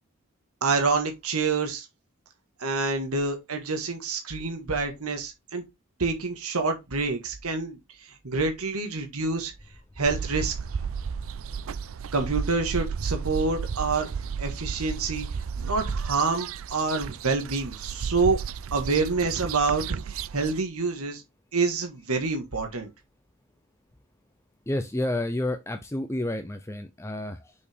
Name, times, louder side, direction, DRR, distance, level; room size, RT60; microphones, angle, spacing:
voice 1, 0.6-1.8 2.6-5.6 6.0-9.5 10.0-10.5 12.1-14.1 14.4-15.3 15.6-18.4 18.7-21.2 21.5-22.9, right 4 dB, 80° right, 1.6 m, -27 dB
sound 1, 10.1-20.6, right 6 dB, 65° right, 0.4 m, -33 dB
voice 2, 24.7-27.5, left 1 dB, 10° left, 0.5 m, -30 dB
6.5 x 5.5 x 3.5 m
head